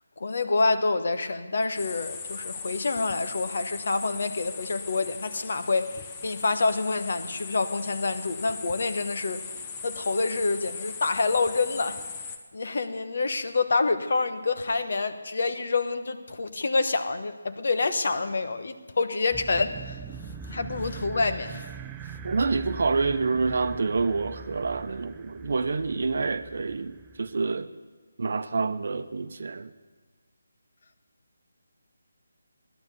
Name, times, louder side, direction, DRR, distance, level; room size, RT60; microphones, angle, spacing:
voice 1, 0.2-9.4 9.8-12.0 12.5-20.0 20.5-21.7, left 3 dB, 60° left, 1.2 m, -27 dB
sound 1, 1.8-12.4, left 5 dB, 25° left, 1.1 m, -39 dB
sound 2, 19.3-27.4, right 5 dB, 10° right, 0.5 m, -42 dB
voice 2, 22.2-27.7 28.2-29.7, right 4 dB, 60° right, 0.8 m, -27 dB
16.0 x 11.5 x 7.1 m
figure-of-eight pair, 160°, 0 cm